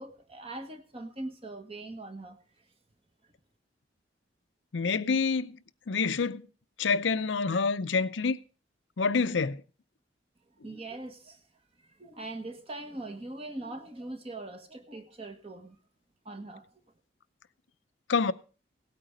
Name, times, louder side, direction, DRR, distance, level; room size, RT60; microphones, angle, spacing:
voice 1, 0.0-2.4 10.6-11.4 11.8-15.8 16.2-16.6, right 2 dB, 30° right, 1.5 m, -41 dB
voice 2, 4.7-5.6 5.9-6.4 6.8-8.4 9.0-9.6 18.1-18.3, left 4 dB, 80° left, 0.6 m, -27 dB
17.0 x 9.0 x 5.2 m
head